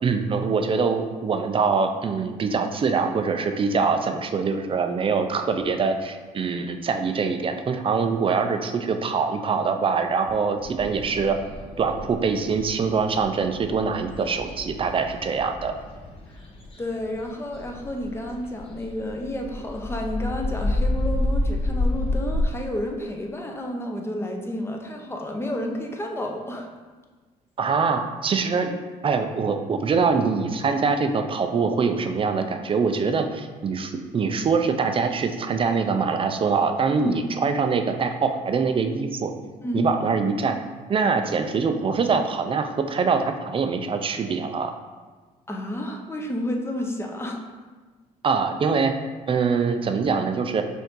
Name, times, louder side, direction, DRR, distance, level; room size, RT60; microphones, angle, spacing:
voice 1, 0.0-11.4 11.8-15.7 27.6-28.7 29.0-39.3 39.7-40.6 40.9-44.7 48.2-48.9 49.3-50.6, right 5 dB, 35° right, 6 dB, 0.5 m, -24 dB
sound 1, 10.6-22.5, left 1 dB, 35° left, 1.0 m, -30 dB
voice 2, 16.8-26.7 37.0-37.2 39.6-39.9 45.5-47.4, left 1 dB, 15° left, 2 dB, 0.7 m, -30 dB
5.4 x 2.7 x 3.7 m, 1.3 s
supercardioid pair, 80°, 15 cm